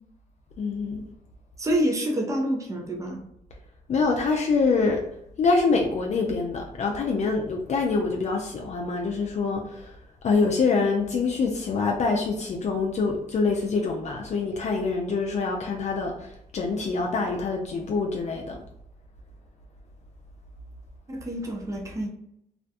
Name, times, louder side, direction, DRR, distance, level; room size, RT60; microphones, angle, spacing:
voice 1, 0.6-1.0 3.9-5.0 5.4-9.9 10.2-18.6, left 4 dB, 55° left, 1 dB, 0.4 m, -25 dB
voice 2, 1.6-3.2 21.1-22.1, equal, 20° right, 2 dB, 0.5 m, -27 dB
2.4 x 2.1 x 2.7 m, 0.76 s
cardioid pair, 70°, 14 cm